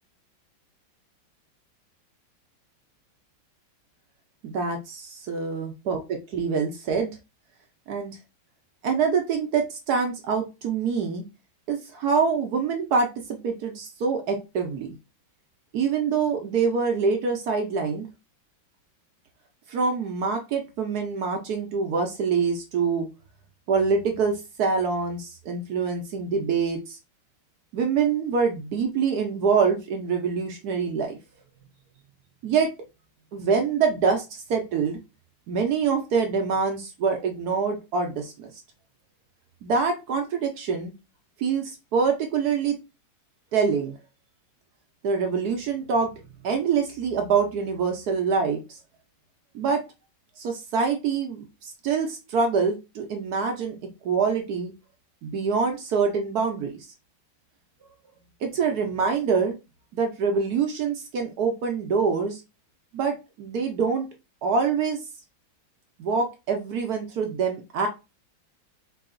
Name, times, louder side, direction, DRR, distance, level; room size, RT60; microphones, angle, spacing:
voice 1, 4.4-7.1 7.9-8.2 8.8-11.2 11.7-14.9 15.7-18.1 19.7-23.1 23.7-27.0 27.7-31.2 32.4-32.7 33.3-35.0 35.5-38.5 39.6-40.9 41.4-42.8 43.5-43.9 45.0-46.1 46.4-48.8 49.5-49.8 50.4-53.8 54.0-54.7 55.2-56.9 58.4-59.5 59.9-62.4 62.9-64.1 64.4-65.0 66.0-67.9, right 5 dB, 65° right, 4 dB, 1.0 m, -25 dB
4.7 x 2.7 x 2.5 m, 0.26 s
omnidirectional pair, 2.2 m